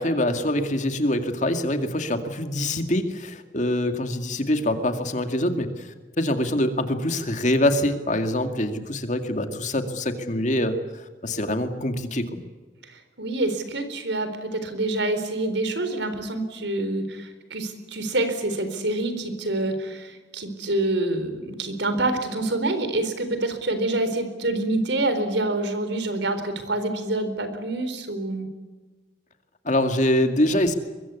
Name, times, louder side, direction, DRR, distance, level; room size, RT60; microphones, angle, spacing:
voice 1, 0.0-5.9 6.2-10.8 11.2-12.4 29.6-30.7, left 1 dB, 40° left, 7 dB, 2.3 m, -24 dB
voice 2, 12.8-28.5, right 2 dB, 70° right, 9 dB, 4.1 m, -27 dB
23.5 x 23.0 x 8.3 m, 1.3 s
head